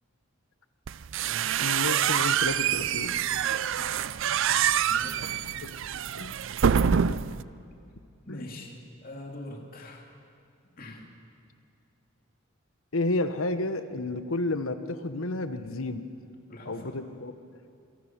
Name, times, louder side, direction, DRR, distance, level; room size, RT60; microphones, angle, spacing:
sound 1, 0.9-7.4, right 8 dB, 65° right, 0.5 m, -26 dB
voice 1, 1.6-3.2 5.6-5.7 6.2-6.5 8.3-8.5 12.9-16.1 16.7-17.3, left 2 dB, 80° left, 10 dB, 1.2 m, -31 dB
voice 2, 3.7-4.0 4.9-5.4 6.7-7.2 8.3-10.1 10.8-11.1 16.5-17.0, left 1 dB, 45° left, 2 dB, 2.6 m, -43 dB
27.0 x 18.0 x 6.0 m, 2.5 s
head